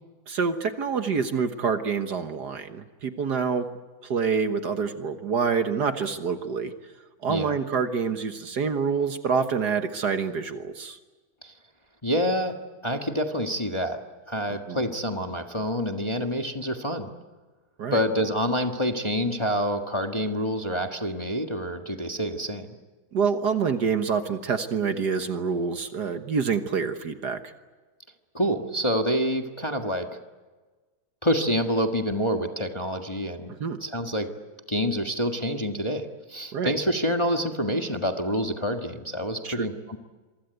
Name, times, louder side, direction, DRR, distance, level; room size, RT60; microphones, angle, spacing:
voice 1, 0.3-3.7 4.0-6.7 7.2-11.0 14.7-14.8 17.8-18.0 23.1-27.5 33.6-33.8 36.5-36.7 39.4-39.7, right 5 dB, 55° right, 8 dB, 1.7 m, -27 dB
voice 2, 7.3-7.6 11.4-11.5 12.0-12.6 12.8-14.0 14.3-17.1 17.9-22.7 28.3-30.1 31.2-33.5 33.8-34.3 34.7-40.0, equal, 15° left, 4 dB, 1.4 m, -27 dB
26.5 x 24.5 x 8.1 m, 1.3 s
omnidirectional pair, 2.2 m